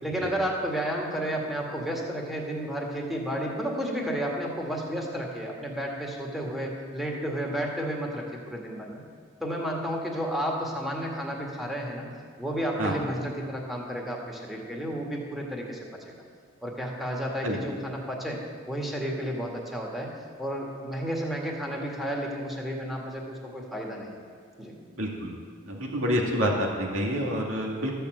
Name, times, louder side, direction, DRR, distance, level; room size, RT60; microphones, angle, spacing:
voice 1, 0.0-9.0 9.4-12.1 12.4-15.9 16.6-20.1 20.4-24.1 24.6-24.7, equal, ahead, -2 dB, 2.0 m, -32 dB
voice 2, 25.0-25.3 25.7-27.9, equal, 80° right, -1 dB, 2.3 m, -28 dB
13.5 x 6.9 x 7.8 m, 2.2 s
head